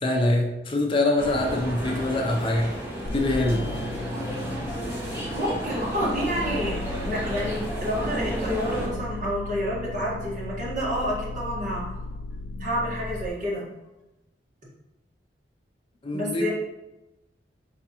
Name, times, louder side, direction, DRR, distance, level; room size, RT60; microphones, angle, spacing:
voice 1, 0.0-2.7 3.1-3.7 16.0-16.5, left 1 dB, 30° left, 1 dB, 0.5 m, -24 dB
sound 1, 1.2-8.9, equal, 15° right, 1.0 m, -32 dB
sound 2, 3.1-13.3, left 2 dB, 85° left, 0.4 m, -36 dB
voice 2, 5.3-6.8 7.0-11.8 12.6-13.7 16.1-16.5, equal, 50° right, -5 dB, 1.5 m, -29 dB
4.8 x 3.5 x 2.9 m, 0.98 s
head